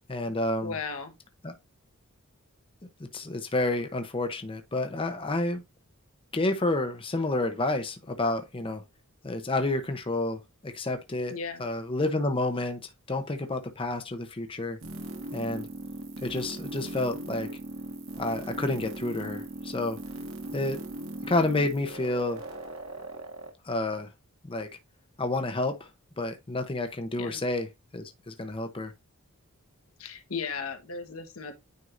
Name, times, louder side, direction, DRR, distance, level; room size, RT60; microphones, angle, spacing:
voice 1, 0.1-0.8 1.4-1.5 3.0-5.6 6.3-8.8 9.2-11.3 11.6-12.8 13.1-14.8 15.3-15.7 16.2-17.5 18.2-20.0 20.5-20.8 21.3-22.4 23.6-24.1 24.5-24.7 25.2-25.8 26.2-27.7 27.9-28.9, left 2 dB, 25° left, 0.7 m, -29 dB
voice 2, 0.6-1.1 11.3-11.7 27.2-27.4 30.0-31.6, left 5 dB, 80° left, 1.2 m, -36 dB
sound 1, 14.8-23.5, right 1 dB, 70° right, 1.7 m, -39 dB
9.4 x 4.5 x 2.5 m
head